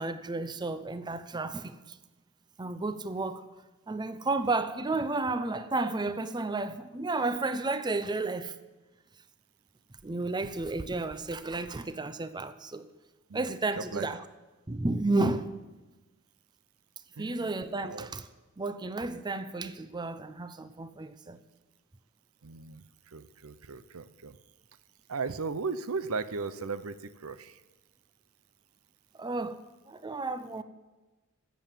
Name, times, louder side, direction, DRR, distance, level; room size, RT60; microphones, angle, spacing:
voice 1, 0.0-2.0 2.6-3.4 3.9-8.5 10.0-12.9 13.3-14.2 14.7-15.5 17.2-18.3 18.6-21.4 29.2-29.6 29.9-30.6, right 3 dB, 20° right, 12 dB, 0.6 m, -32 dB
voice 2, 13.3-14.1 17.2-18.1 22.4-22.8 23.1-24.4 25.1-27.6, right 4 dB, 75° right, 14 dB, 0.7 m, -37 dB
14.0 x 7.9 x 7.5 m, 1.1 s
head